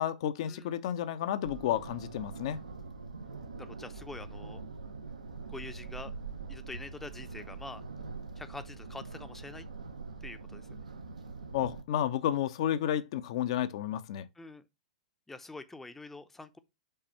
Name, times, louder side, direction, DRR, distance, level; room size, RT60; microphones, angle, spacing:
voice 1, 0.0-2.6 11.5-14.3, left 11 dB, 50° left, 0.7 m, -31 dB
sound 1, 1.4-11.8, right 4 dB, 75° right, 1.0 m, -43 dB
voice 2, 3.6-4.6 5.5-6.1 6.5-7.8 8.4-9.7 10.2-10.6 14.4-14.6 15.3-16.6, left 3 dB, 5° left, 0.7 m, -45 dB
5.5 x 4.1 x 5.6 m
figure-of-eight pair, 100°, 4 cm